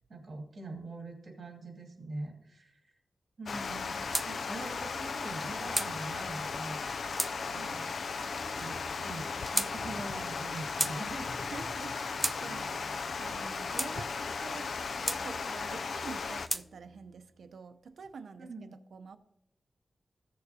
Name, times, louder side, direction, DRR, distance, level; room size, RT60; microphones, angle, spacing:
voice 1, 0.1-2.8 3.4-6.8 7.5-7.9 8.6-9.3 9.5-11.6 18.4-18.7, right 2 dB, 55° right, 1 dB, 2.5 m, -43 dB
Water, 3.5-16.5, left 4 dB, 70° left, 0.4 m, -36 dB
sound 1, 4.1-4.3 5.2-5.9 6.7-7.3 8.2-8.7 9.4-9.7 10.4-11.0 11.8-12.4 13.2-13.9 14.7-15.2 16.0-16.6, right 1 dB, 10° right, 0.3 m, -34 dB
sound 2, 8.3-17.8, equal, 15° left, 3.4 m, -56 dB
voice 2, 11.3-14.1 14.4-14.7 15.0-19.2, right 5 dB, 80° right, 10 dB, 0.6 m, -47 dB
15.0 x 6.6 x 2.8 m, 0.81 s
wide cardioid pair, 120°, 0 cm